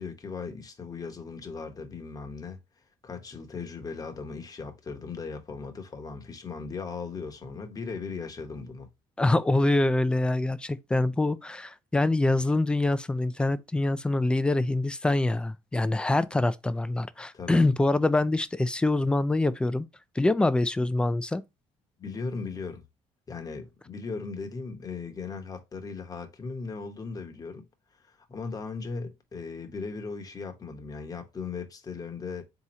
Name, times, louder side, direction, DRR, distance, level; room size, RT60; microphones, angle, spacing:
voice 1, 0.0-2.6 3.0-8.9 17.3-17.7 22.0-22.8 23.3-27.6 28.3-32.4, left 4 dB, 30° left, 1.0 m, -37 dB
voice 2, 9.2-19.9 20.2-21.4, left 2 dB, 10° left, 0.4 m, -25 dB
3.6 x 2.9 x 4.2 m
cardioid pair, 105°, 13 cm